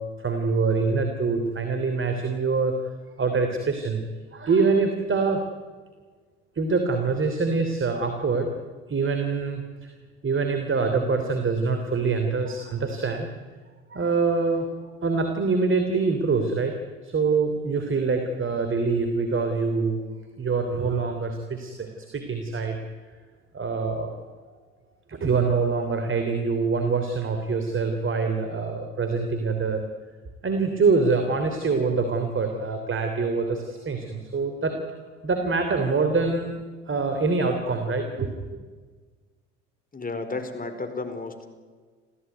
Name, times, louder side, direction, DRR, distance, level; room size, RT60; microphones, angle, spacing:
voice 1, 0.0-2.8 3.2-4.0 4.3-5.4 6.5-8.5 8.9-9.9 10.2-13.3 13.9-14.7 15.0-16.7 17.0-20.0 20.4-22.8 23.5-24.2 25.1-29.8 30.4-34.8 35.2-36.6 36.9-38.5, right 4 dB, 35° right, 6 dB, 3.3 m, -25 dB
voice 2, 39.9-41.5, left 3 dB, 25° left, 7 dB, 4.6 m, -32 dB
27.5 x 15.0 x 9.5 m, 1.5 s
hypercardioid pair, 60°, 36 cm